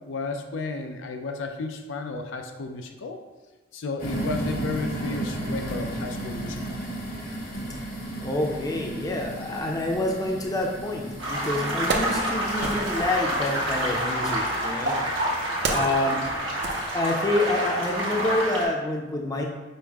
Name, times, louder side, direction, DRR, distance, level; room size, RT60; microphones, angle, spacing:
voice 1, 0.0-3.2 3.7-6.8, left 3 dB, 80° left, 5 dB, 0.4 m, -33 dB
sound 1, 4.0-14.0, right 1 dB, 50° left, 1.0 m, -34 dB
voice 2, 8.2-15.0 15.7-16.3 16.9-19.4, left 1 dB, 20° left, 0 dB, 0.5 m, -27 dB
Wood, 11.1-11.2 11.6-13.2 14.2-17.5 17.8-18.0, right 2 dB, 65° right, 0.5 m, -33 dB
sound 2, 11.2-18.7, equal, 85° right, 1.2 m, -28 dB
5.2 x 2.0 x 4.6 m, 1.2 s
head